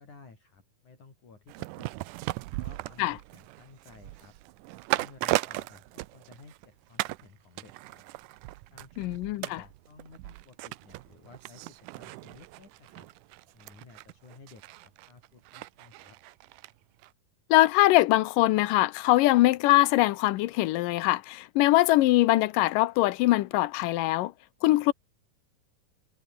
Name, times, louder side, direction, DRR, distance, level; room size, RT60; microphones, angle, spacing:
voice 1, 0.0-1.9 2.6-4.4 4.9-8.1 8.7-13.1 13.5-16.2, left 4 dB, 60° left, 7.5 m, -54 dB
sound 1, 1.5-6.7 7.0-7.3 7.6-16.7 17.0-17.1, right 19 dB, 80° right, 2.0 m, -37 dB
voice 2, 9.0-9.6 17.5-24.3 24.6-24.9, left 17 dB, 80° left, 2.3 m, -22 dB
omnidirectional pair, 4.0 m